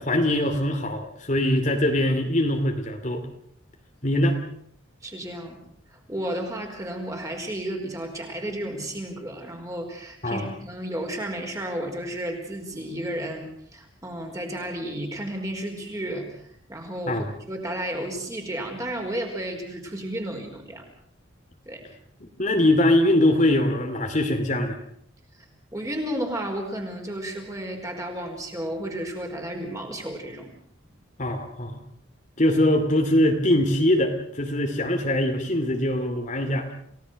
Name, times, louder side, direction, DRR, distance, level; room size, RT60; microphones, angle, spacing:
voice 1, 0.0-3.3 4.0-4.4 10.2-10.5 17.1-17.3 22.4-24.8 31.2-31.8 32.4-36.7, left 1 dB, 35° left, 4 dB, 2.5 m, -22 dB
voice 2, 5.0-5.6 5.9-16.4 16.7-20.8 21.6-21.8 25.7-30.5, right 1 dB, 15° right, 2 dB, 4.7 m, -32 dB
29.0 x 18.0 x 6.4 m, 0.65 s
head